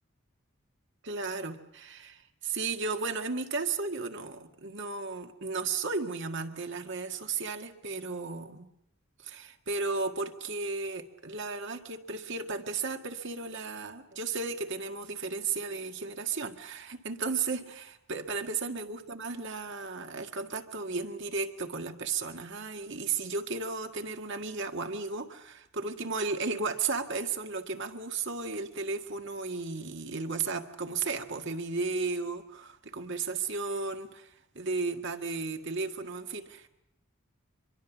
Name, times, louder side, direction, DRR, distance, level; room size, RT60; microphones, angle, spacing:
voice 1, 1.0-8.7 9.2-36.7, right 4 dB, 60° right, 6 dB, 1.8 m, -34 dB
25.0 x 23.5 x 7.2 m, 0.82 s
head